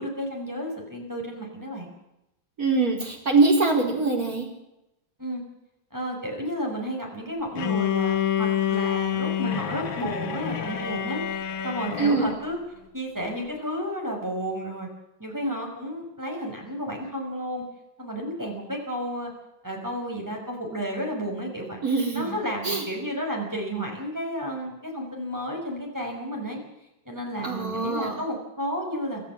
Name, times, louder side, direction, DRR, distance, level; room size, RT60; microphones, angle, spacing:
voice 1, 0.0-1.9 5.2-5.4 5.9-12.6 12.9-14.9 15.2-17.6 18.0-19.3 19.6-21.8 22.1-26.6 27.1-29.2, equal, 10° right, 0 dB, 5.7 m, -32 dB
voice 2, 2.6-4.5 12.0-12.3 21.8-22.3 22.6-22.8 27.4-28.1, right 3 dB, 45° right, 1 dB, 5.0 m, -23 dB
Bowed string instrument, 7.6-12.4, left 10 dB, 85° left, 2.1 m, -27 dB
24.5 x 14.0 x 7.5 m, 0.88 s
omnidirectional pair, 2.1 m